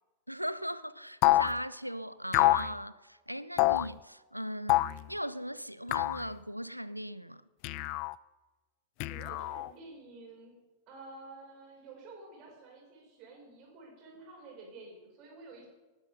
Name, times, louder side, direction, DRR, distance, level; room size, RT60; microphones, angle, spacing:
voice 1, 0.3-7.4, equal, 90° right, 0.5 m, -38 dB
sound 1, 1.2-1.5 2.3-2.7 3.6-3.9 4.7-5.0 5.9-6.2 7.6-8.1 9.0-9.7, left 19 dB, 45° left, 0.3 m, -26 dB
voice 2, 9.1-10.5 10.9-15.7, right 3 dB, 40° right, 6.4 m, -50 dB
19.5 x 9.9 x 5.4 m
figure-of-eight pair, 90°, 0 cm